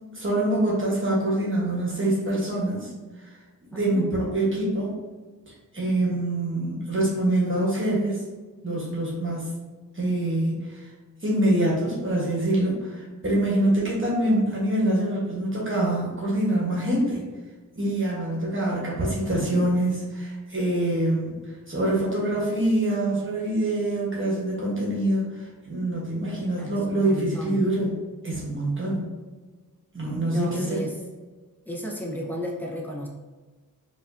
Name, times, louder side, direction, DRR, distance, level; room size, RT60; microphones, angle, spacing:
voice 1, 0.1-2.9 3.2-3.3 3.7-4.9 5.5-8.2 8.6-9.5 9.9-10.9 11.2-17.2 17.8-27.9 28.2-29.0 29.9-30.8, right 1 dB, 35° right, -5 dB, 1.1 m, -25 dB
voice 2, 3.7-4.1 26.6-27.6 30.3-31.0 31.7-33.1, equal, 5° left, -2 dB, 0.7 m, -34 dB
4.8 x 2.5 x 2.5 m, 1.3 s
wide cardioid pair, 85°, 34 cm